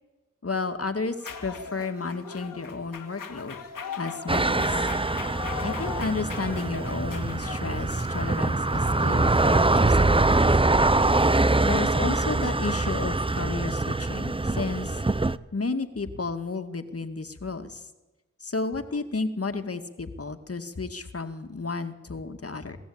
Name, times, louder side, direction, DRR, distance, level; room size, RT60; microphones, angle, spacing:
voice 1, 0.4-3.6 4.0-4.8 5.6-10.5 11.6-15.0 15.5-17.9 18.4-22.8, left 3 dB, 45° left, 7 dB, 2.1 m, -32 dB
sound 1, 1.2-13.2, left 6 dB, 80° left, 2.0 m, -41 dB
sound 2, 4.3-15.4, right 2 dB, 15° right, 0.7 m, -24 dB
23.0 x 15.0 x 8.8 m, 1.1 s
cardioid pair, 45°, 32 cm